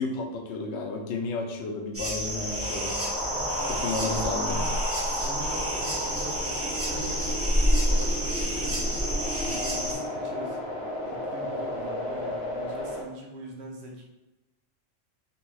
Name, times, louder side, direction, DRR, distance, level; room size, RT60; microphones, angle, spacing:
voice 1, 0.0-3.0 3.7-4.6, left 3 dB, 65° left, 3 dB, 0.8 m, -32 dB
sound 1, 1.9-9.9, equal, 20° right, 0.3 m, -29 dB
sound 2, 2.2-13.0, left 1 dB, 85° right, 1.3 m, -33 dB
voice 2, 3.2-4.8 5.0-7.4 7.7-10.6 11.0-14.1, right 1 dB, 60° right, 0 dB, 0.9 m, -42 dB
3.3 x 2.7 x 3.0 m, 1.0 s
omnidirectional pair, 1.4 m